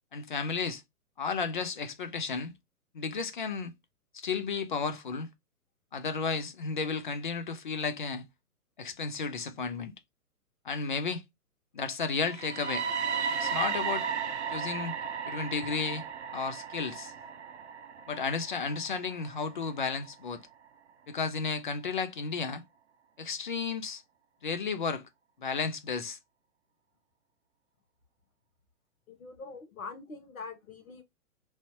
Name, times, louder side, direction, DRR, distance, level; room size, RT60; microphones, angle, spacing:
voice 1, 0.1-0.8 1.2-2.5 2.9-3.7 4.1-5.3 5.9-8.2 8.8-9.9 10.6-11.2 11.7-12.9 13.4-14.1 14.5-15.0 15.3-17.1 18.1-20.4 21.1-22.6 23.2-24.0 24.4-25.1 25.4-26.2, left 5 dB, 35° left, 0.4 m, -33 dB
sound 1, 12.2-20.1, right 6 dB, 50° right, 0.6 m, -35 dB
voice 2, 29.1-31.0, left 4 dB, 65° left, 1.3 m, -44 dB
3.2 x 2.6 x 2.7 m
figure-of-eight pair, 130°, 45 cm